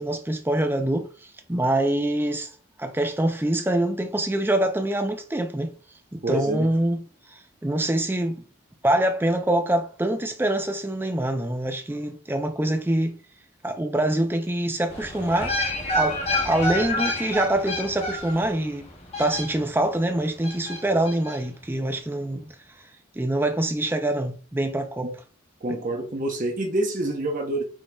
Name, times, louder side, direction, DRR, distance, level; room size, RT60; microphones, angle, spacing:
voice 1, 0.0-2.5 2.8-5.7 6.1-7.0 7.3-8.4 8.8-13.1 13.6-15.6 15.9-18.9 19.2-22.6 23.2-25.1, right 1 dB, 10° right, 0.4 m, -25 dB
voice 2, 6.2-6.7 25.0-25.1 25.6-27.6, right 1 dB, 40° right, 0.9 m, -27 dB
sound 1, 14.9-19.9 20.4-21.4 21.6-21.7, left 1 dB, 30° left, 1.1 m, -29 dB
6.2 x 3.5 x 2.2 m
head